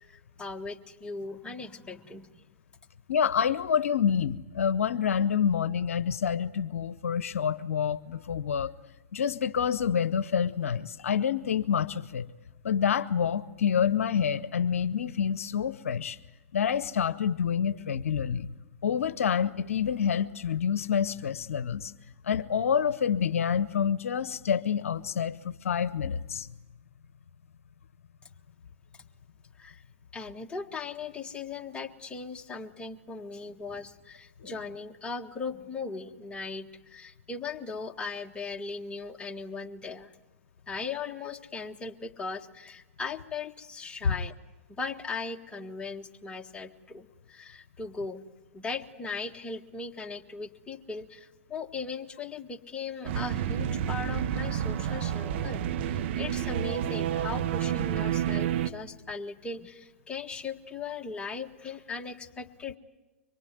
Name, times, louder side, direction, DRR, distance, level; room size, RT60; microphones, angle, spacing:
voice 1, 0.0-2.4 28.9-29.0 29.6-29.8 30.1-40.2 40.7-44.3 44.8-48.2 48.5-62.8, left 4 dB, 15° left, 3 dB, 1.6 m, -38 dB
voice 2, 3.1-8.7 9.1-12.3 12.6-16.2 16.5-18.5 18.8-21.9 22.2-26.5 34.4-34.5 44.0-44.1, left 7 dB, 70° left, 15 dB, 0.8 m, -27 dB
sound 1, 53.1-58.7, right 10 dB, 55° right, 1.1 m, -29 dB
24.5 x 22.5 x 9.3 m, 1.1 s
hypercardioid pair, 110°, 8 cm